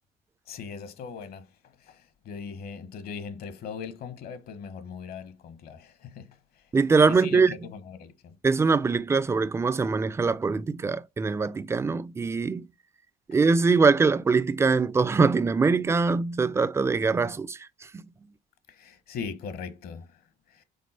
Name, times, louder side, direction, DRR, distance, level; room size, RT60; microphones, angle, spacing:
voice 1, 0.5-1.5 1.9-2.0 2.2-6.3 7.1-8.4 18.7-20.1, left 6 dB, 65° left, 1.0 m, -39 dB
voice 2, 6.7-7.5 8.4-12.7 13.3-17.6, right 4 dB, 15° right, 0.4 m, -23 dB
5.3 x 3.6 x 5.4 m
cardioid pair, 110°, 17 cm